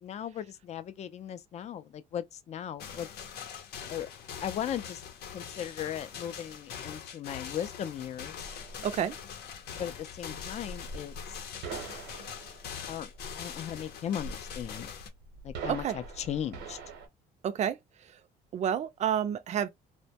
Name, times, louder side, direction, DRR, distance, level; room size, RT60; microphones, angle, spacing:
voice 1, 0.0-3.1 3.9-4.1 4.4-5.0 5.3-8.5 9.8-11.4 12.9-13.1 13.4-14.9 15.4-16.8, left 9 dB, 40° left, 0.4 m, -37 dB
sound 1, 2.8-15.1, left 8 dB, 70° left, 0.7 m, -43 dB
sound 2, 8.4-17.1, right 3 dB, 80° right, 0.8 m, -44 dB
voice 2, 8.8-9.1 15.7-15.9 17.4-17.8 18.5-19.7, right 9 dB, 45° right, 0.4 m, -29 dB
2.1 x 2.1 x 2.7 m
cardioid pair, 110°, 17 cm